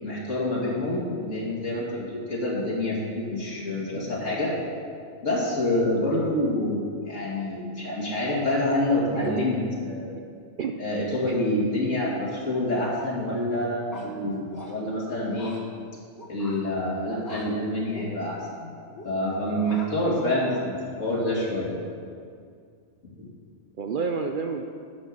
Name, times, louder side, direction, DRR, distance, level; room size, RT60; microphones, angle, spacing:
voice 1, 0.0-4.5 5.2-10.1 10.8-15.5 16.3-18.7 19.0-21.8 23.2-23.3, left 1 dB, 60° left, -5 dB, 2.6 m, -27 dB
voice 2, 9.1-9.5 10.6-10.8 11.3-11.4 23.8-24.6, right 5 dB, 65° right, 5 dB, 0.5 m, -30 dB
sound 1, 12.8-13.1 13.9-14.7 15.4-15.6 16.2-16.6 17.2-17.5 17.9-18.1 18.8-19.1 19.6-19.9 20.3-20.8, left 2 dB, 15° left, 1.1 m, -44 dB
10.5 x 5.6 x 7.6 m, 2.2 s
omnidirectional pair, 1.4 m